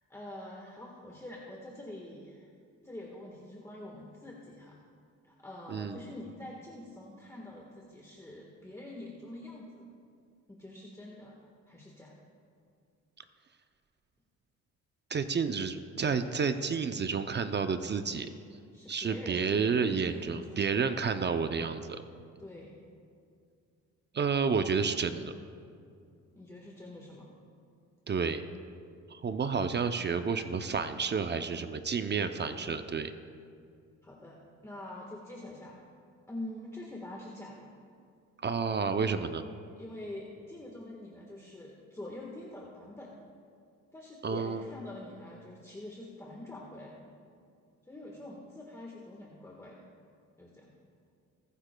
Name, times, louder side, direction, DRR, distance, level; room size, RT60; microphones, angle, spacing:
voice 1, 0.0-2.5 2.8-4.8 5.2-9.8 10.5-11.4 11.7-12.2 18.7-21.0 22.4-22.8 26.3-27.3 34.0-35.8 36.3-37.7 39.8-43.2 43.9-47.1 47.8-49.8 50.4-50.7, left 1 dB, 10° left, -2 dB, 1.4 m, -45 dB
voice 2, 15.1-18.3 18.9-22.0 24.1-25.3 28.1-28.4 29.1-33.1 38.4-39.4 44.2-44.6, right 5 dB, 35° right, 9 dB, 0.6 m, -30 dB
21.5 x 9.9 x 2.3 m, 2.3 s
cardioid pair, 90°, 30 cm